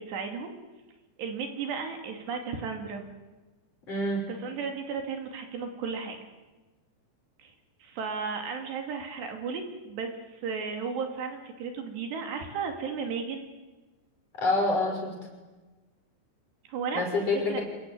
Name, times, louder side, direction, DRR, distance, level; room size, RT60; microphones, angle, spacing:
voice 1, 0.1-0.5 1.2-3.0 4.3-6.2 7.4-7.5 7.8-13.5 16.6-17.6, right 5 dB, 70° right, 4 dB, 4.8 m, -34 dB
voice 2, 3.9-4.2 14.4-15.1 16.9-17.6, left 2 dB, 35° left, 1 dB, 6.8 m, -27 dB
26.5 x 23.0 x 9.4 m, 1.2 s
omnidirectional pair, 5.1 m